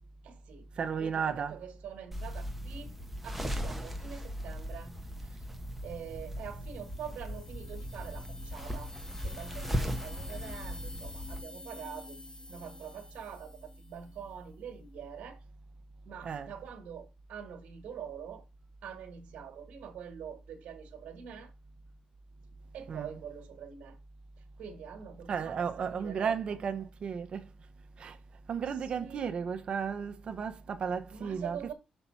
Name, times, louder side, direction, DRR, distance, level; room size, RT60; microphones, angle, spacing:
voice 1, 0.2-0.7 1.0-2.9 3.2-5.0 5.8-8.9 9.2-12.2 12.5-15.4 16.0-18.4 18.8-21.5 22.7-24.0 24.6-26.6 28.6-29.4 31.1-31.7, right 8 dB, 70° right, 1.6 m, -45 dB
voice 2, 0.8-1.5 16.2-16.5 22.9-23.1 25.3-27.5 28.0-28.2 28.5-31.7, right 6 dB, 50° right, 0.9 m, -34 dB
sound 1, 2.1-11.4, equal, 5° right, 1.1 m, -38 dB
sound 2, 6.4-14.3, left 2 dB, 30° left, 1.5 m, -49 dB
5.7 x 5.7 x 4.3 m
cardioid pair, 105°, 2 cm